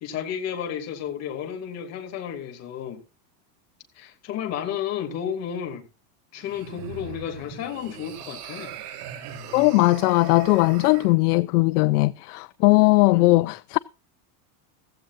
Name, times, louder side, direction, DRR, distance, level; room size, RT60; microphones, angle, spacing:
voice 1, 0.0-3.0 3.9-5.9 6.3-8.7 13.1-13.5, left 8 dB, 30° left, 2.6 m, -32 dB
sound 1, 6.4-11.1, right 8 dB, 65° right, 4.0 m, -40 dB
voice 2, 9.5-13.8, left 22 dB, 65° left, 0.5 m, -19 dB
16.0 x 15.0 x 2.5 m
supercardioid pair, 175°, 50 cm